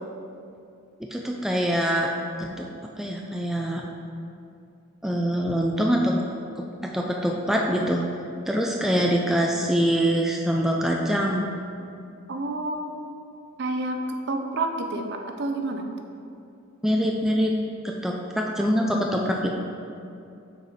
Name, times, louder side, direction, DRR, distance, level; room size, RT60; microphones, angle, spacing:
voice 1, 1.1-2.1 2.4-2.7 3.0-3.8 5.0-6.2 6.6-6.7 6.9-8.1 8.5-11.5 16.8-17.5 17.8-19.6, equal, ahead, -1 dB, 0.3 m, -24 dB
voice 2, 12.3-13.2 13.6-15.9, right 2 dB, 50° right, 4 dB, 0.6 m, -29 dB
6.5 x 4.8 x 4.2 m, 2.6 s
head